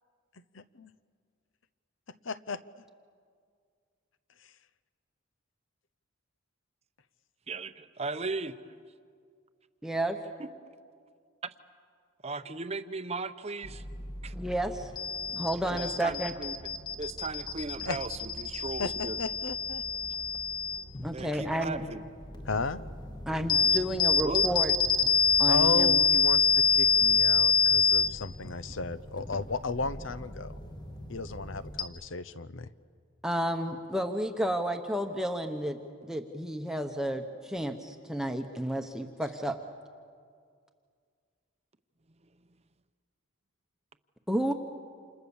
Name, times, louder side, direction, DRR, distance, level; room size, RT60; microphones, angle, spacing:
voice 1, 0.5-0.9 2.2-2.6 17.9-18.0 18.8-19.8 22.5-22.8 25.5-30.5 31.1-32.7, left 3 dB, 65° left, 15 dB, 0.8 m, -34 dB
voice 2, 7.5-8.8 10.4-10.5 12.2-13.8 14.2-14.3 15.7-16.6 16.9-19.2 21.1-22.0 24.2-24.4, right 3 dB, 30° right, 11 dB, 0.8 m, -36 dB
voice 3, 9.8-10.2 14.3-14.9 15.3-16.3 21.0-21.9 23.3-24.7 25.0-25.1 25.4-26.0 33.2-39.6 44.3-44.5, equal, ahead, 4 dB, 1.0 m, -31 dB
sound 1, 13.6-31.8, left 5 dB, 20° left, 1.5 m, -28 dB
28.5 x 27.5 x 7.2 m, 2.1 s
head